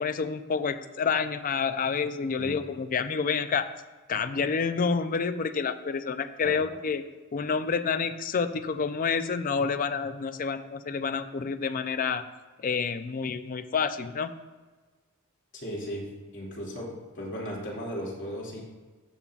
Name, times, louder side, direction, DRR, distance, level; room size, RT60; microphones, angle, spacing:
voice 1, 0.0-3.7 4.1-7.0 7.3-12.2 12.6-14.3, left 5 dB, 40° left, 11 dB, 0.4 m, -28 dB
voice 2, 15.5-16.1 16.3-16.9 17.1-18.6, equal, 60° left, -4 dB, 2.5 m, -36 dB
14.0 x 5.4 x 2.4 m, 1.3 s
head